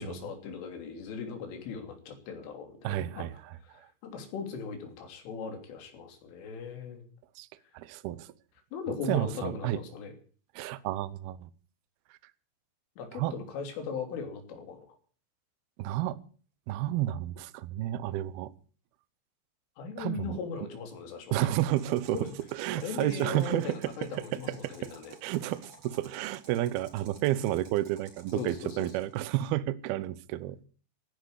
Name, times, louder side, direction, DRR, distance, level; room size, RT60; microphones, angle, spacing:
voice 1, 0.0-3.3 3.7-7.0 8.7-10.1 13.0-15.0 19.8-21.5 22.1-22.3 22.7-25.2 28.4-28.9, left 5 dB, 70° left, 6 dB, 5.6 m, -39 dB
voice 2, 2.8-3.9 7.4-7.5 7.7-8.3 9.0-9.8 10.6-11.5 13.1-13.3 15.8-16.2 16.7-18.5 20.0-20.4 21.3-22.2 22.5-23.8 24.1-24.2 24.6-24.9 25.2-30.6, right 14 dB, 80° right, 16 dB, 2.2 m, -31 dB
sound 1, 21.6-29.2, right 2 dB, 35° right, 4.5 m, -54 dB
16.0 x 10.5 x 8.3 m, 0.42 s
omnidirectional pair, 5.9 m